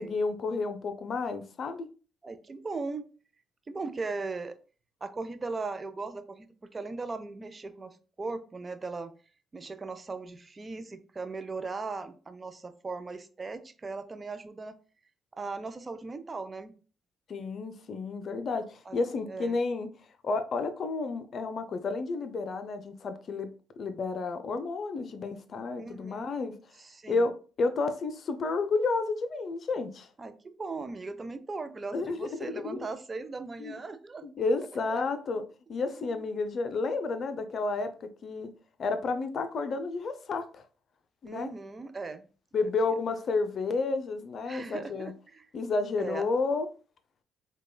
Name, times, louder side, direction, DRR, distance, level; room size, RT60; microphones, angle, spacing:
voice 1, 0.0-1.9 17.3-19.9 20.2-23.5 23.8-26.6 27.1-30.1 31.9-32.9 33.6-33.7 34.2-35.4 35.7-38.5 38.8-40.6 41.2-41.5 42.5-45.1 45.5-46.7, left 3 dB, 55° left, 0.4 m, -31 dB
voice 2, 2.2-3.1 3.7-4.6 5.0-9.1 9.5-14.7 15.3-16.8 18.9-19.0 19.3-19.6 25.8-26.3 26.8-27.2 30.2-34.2 34.9-35.0 35.9-36.3 41.3-42.3 42.6-42.7 44.5-45.5 46.0-46.2, right 3 dB, 35° right, 0.4 m, -38 dB
4.8 x 2.2 x 2.2 m
hypercardioid pair, 55°, 0 cm